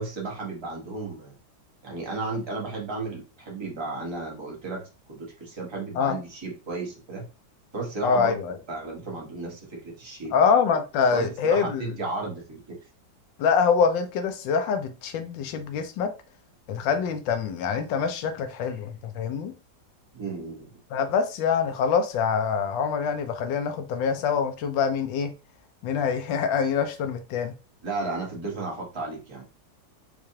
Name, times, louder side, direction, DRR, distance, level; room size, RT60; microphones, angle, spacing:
voice 1, 0.0-1.3 1.8-7.2 7.7-8.4 8.7-10.4 11.1-12.8 20.1-20.7 27.8-29.4, right 3 dB, 20° right, 0.9 m, -34 dB
voice 2, 8.0-8.6 10.3-11.8 13.4-16.1 16.7-19.5 20.9-25.3 25.8-27.5, left 6 dB, 80° left, 1.3 m, -25 dB
4.6 x 2.5 x 2.8 m
omnidirectional pair, 2.0 m